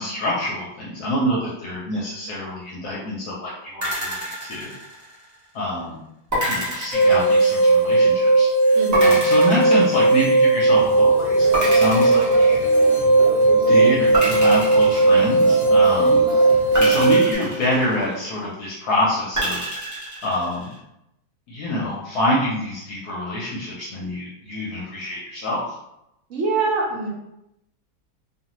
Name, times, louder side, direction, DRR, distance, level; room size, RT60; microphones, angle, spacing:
voice 1, 0.0-4.7 5.5-6.0 6.4-12.7 13.7-16.2 16.8-19.6 20.2-20.7 21.5-25.6, left 1 dB, 70° left, -5 dB, 1.1 m, -26 dB
sound 1, 3.8-5.4 6.3-7.9 8.9-10.6 11.5-13.1 14.1-15.8 16.7-18.4 19.3-20.8, right 1 dB, 15° right, 0.6 m, -28 dB
sound 2, 6.9-17.3, right 2 dB, 35° left, 1.1 m, -17 dB
voice 2, 8.7-9.2 16.0-16.3 26.3-27.1, right 3 dB, 60° right, -2 dB, 0.9 m, -25 dB
sound 3, 10.7-17.1, right 3 dB, 85° right, 0.5 m, -33 dB
2.7 x 2.4 x 3.0 m, 0.85 s
omnidirectional pair, 1.9 m